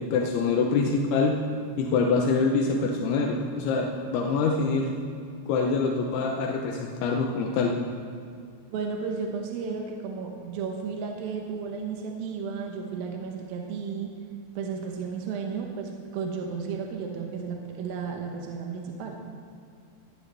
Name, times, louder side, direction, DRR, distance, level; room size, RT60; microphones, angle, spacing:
voice 1, 0.0-1.3 1.8-4.9 5.5-7.7, left 4 dB, 75° left, 1 dB, 2.6 m, -25 dB
voice 2, 8.7-14.1 14.6-19.2, right 5 dB, 75° right, 2 dB, 2.3 m, -33 dB
19.5 x 13.0 x 3.4 m, 2.3 s
omnidirectional pair, 5.2 m